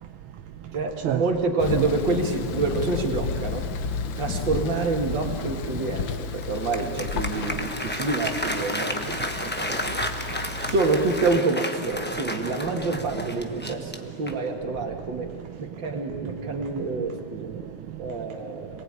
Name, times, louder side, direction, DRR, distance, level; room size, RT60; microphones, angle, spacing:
voice 1, 0.7-3.7 4.2-10.0 10.6-15.3 15.6-17.6 18.0-18.8, right 3 dB, 60° right, 2.7 m, -27 dB
Thunder, 1.6-11.4, left 6 dB, 70° left, 1.6 m, -33 dB
sound 1, 2.7-3.0 5.4-5.6 6.1-6.2 7.1-7.8 8.1-8.3 8.9-9.8 10.1-11.0 12.6-13.7 14.2-14.3 15.0-15.4, left 2 dB, 85° left, 3.4 m, -44 dB
Applause, 6.4-14.6, left 1 dB, 10° left, 0.7 m, -32 dB
voice 2, 9.1-9.5 9.8-10.6 15.7-15.8 16.5-16.6 16.9-17.0 17.4-18.2 18.5-18.8, right 12 dB, 85° right, 1.6 m, -34 dB
26.5 x 19.5 x 9.0 m
omnidirectional pair, 2.3 m